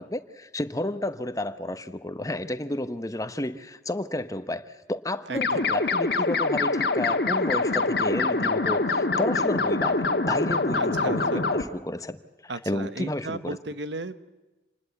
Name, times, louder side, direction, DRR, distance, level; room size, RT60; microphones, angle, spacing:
voice 1, 0.0-12.2 12.7-13.6, left 1 dB, 20° left, 11 dB, 1.0 m, -31 dB
voice 2, 5.3-5.7 10.7-11.4 12.5-14.2, right 2 dB, 90° right, 12 dB, 1.3 m, -35 dB
sound 1, 5.4-11.6, left 3 dB, 65° left, 1.6 m, -24 dB
27.5 x 20.5 x 8.3 m, 1.1 s
head